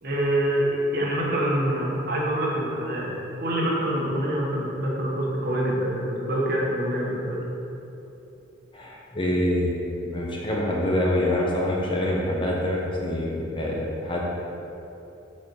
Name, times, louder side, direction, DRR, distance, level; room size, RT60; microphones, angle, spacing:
voice 1, 0.0-7.4, right 1 dB, 55° right, -3 dB, 1.3 m, -26 dB
voice 2, 8.7-9.7 10.0-14.2, left 1 dB, 25° left, -3 dB, 1.0 m, -25 dB
6.7 x 4.3 x 5.6 m, 2.9 s
head